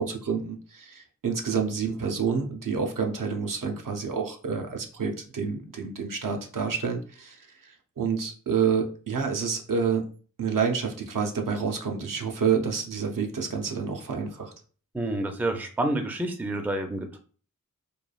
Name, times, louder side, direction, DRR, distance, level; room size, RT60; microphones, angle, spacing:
voice 1, 0.0-10.1 10.4-14.5, right 6 dB, 65° right, 3 dB, 0.6 m, -28 dB
voice 2, 14.9-17.2, right 1 dB, 5° right, 5 dB, 0.4 m, -28 dB
3.1 x 2.3 x 2.3 m, 0.40 s
wide cardioid pair, 70°, 34 cm